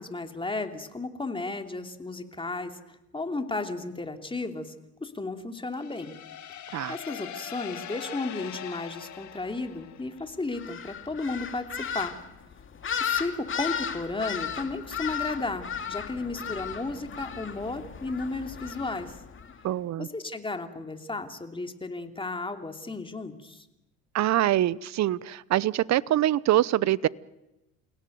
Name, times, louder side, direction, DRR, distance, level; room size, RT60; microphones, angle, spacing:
voice 1, 0.0-2.8 3.1-4.7 5.0-6.1 6.9-12.1 13.0-19.2 20.0-23.7, left 3 dB, 15° left, 5 dB, 3.0 m, -34 dB
sound 1, 5.7-10.4, left 10 dB, 50° left, 2.4 m, -42 dB
sound 2, 10.5-19.6, left 8 dB, 30° left, 2.4 m, -35 dB
voice 2, 19.6-20.1 24.1-27.1, right 13 dB, 45° right, 21 dB, 0.9 m, -24 dB
29.5 x 17.5 x 9.4 m, 0.94 s
hypercardioid pair, 80°, 38 cm